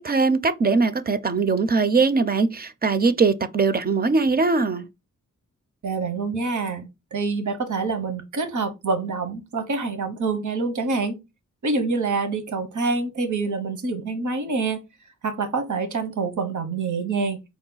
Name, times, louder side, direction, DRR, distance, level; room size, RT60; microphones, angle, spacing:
voice 1, 0.0-4.9, right 4 dB, 30° right, 0.5 m, -21 dB
voice 2, 5.8-11.2 11.6-14.8 15.2-17.4, right 4 dB, 70° right, 1.0 m, -26 dB
4.8 x 2.2 x 3.8 m
cardioid pair, 70°, 31 cm